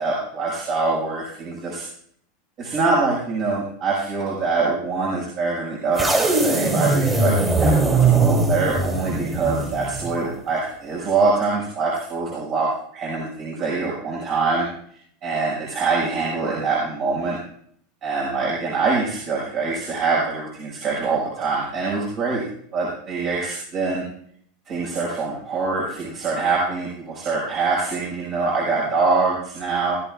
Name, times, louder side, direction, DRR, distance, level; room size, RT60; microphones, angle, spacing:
voice 1, 0.0-1.8 2.6-14.7 15.2-17.4 18.0-22.4 22.7-24.0 24.7-30.0, right 4 dB, 45° right, -4 dB, 6.1 m, -24 dB
sound 1, 6.0-10.2, right 3 dB, 20° right, 3.1 m, -20 dB
20.0 x 13.5 x 2.5 m, 0.65 s
hypercardioid pair, 110°, 0 cm